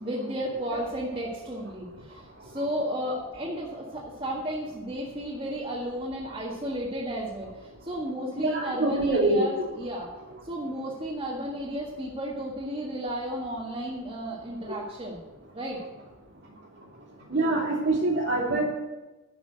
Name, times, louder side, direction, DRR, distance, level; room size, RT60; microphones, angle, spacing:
voice 1, 0.0-10.1 10.5-15.2 15.5-15.8, equal, 25° right, -7 dB, 1.8 m, -33 dB
voice 2, 8.4-9.5 17.3-18.6, right 2 dB, 50° right, -1 dB, 2.6 m, -24 dB
11.0 x 6.1 x 7.8 m, 1.1 s
head